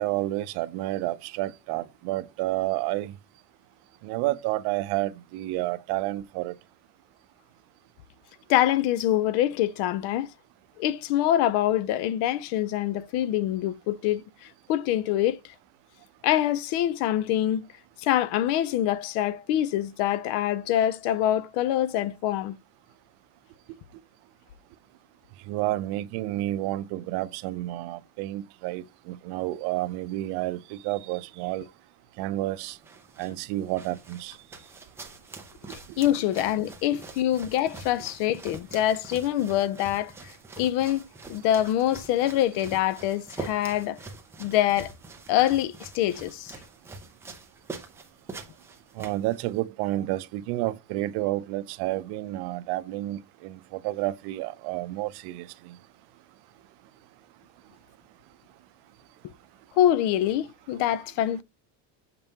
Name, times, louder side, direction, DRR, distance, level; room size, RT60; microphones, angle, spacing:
voice 1, 0.0-3.1 4.0-6.5 25.4-31.6 32.2-32.8 33.2-34.4 48.9-55.8, right 16 dB, 55° right, 0.6 m, -30 dB
voice 2, 8.5-10.3 10.8-15.5 16.2-17.7 18.0-22.6 35.7-40.3 40.6-41.0 41.3-44.0 44.4-44.9 45.3-46.5 59.8-61.4, left 12 dB, 60° left, 0.6 m, -25 dB
sound 1, 32.6-49.6, right 3 dB, 5° right, 0.3 m, -45 dB
6.7 x 5.3 x 2.8 m
cardioid pair, 175°, 48 cm